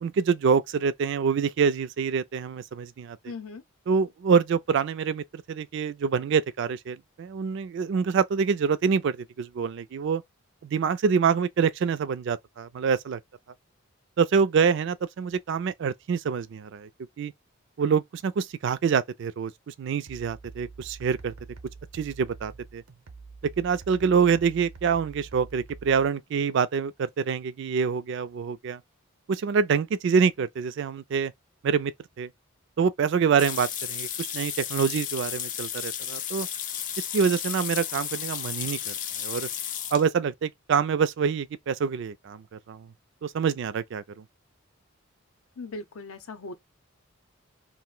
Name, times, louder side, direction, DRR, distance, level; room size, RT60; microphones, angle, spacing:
voice 1, 0.0-3.3 3.9-10.2 10.6-13.2 14.2-16.9 17.2-17.3 17.8-21.3 21.9-22.8 23.4-28.8 29.3-31.3 31.6-32.3 32.8-36.5 37.0-38.9 39.2-39.5 39.9-42.9 43.2-44.0, right 6 dB, 55° right, 0.3 m, -26 dB
voice 2, 3.3-3.6 45.6-46.5, left 3 dB, 80° left, 0.6 m, -38 dB
sound 1, 20.1-26.1, right 4 dB, 90° right, 0.7 m, -46 dB
sound 2, 33.4-40.1, left 9 dB, 40° left, 0.3 m, -33 dB
2.5 x 2.0 x 3.7 m
head